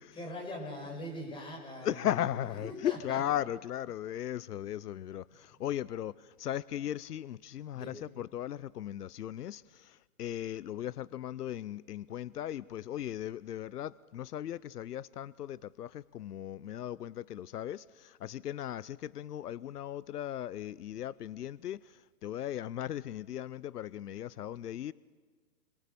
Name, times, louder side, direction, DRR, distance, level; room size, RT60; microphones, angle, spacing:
voice 1, 0.0-3.2 7.7-8.0, left 1 dB, 10° left, 5.7 m, -42 dB
voice 2, 1.8-24.9, left 11 dB, 85° left, 0.7 m, -37 dB
29.0 x 23.0 x 6.9 m
hypercardioid pair, 150°, 45 cm